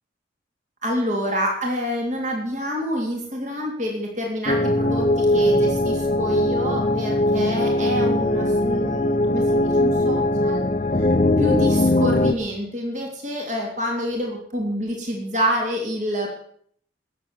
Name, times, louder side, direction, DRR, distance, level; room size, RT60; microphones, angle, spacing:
voice 1, 0.8-10.6 10.9-16.3, equal, 40° right, 0 dB, 3.2 m, -27 dB
sound 1, 4.5-12.3, left 1 dB, 35° left, 0.7 m, -20 dB
19.5 x 7.9 x 6.9 m, 0.62 s
head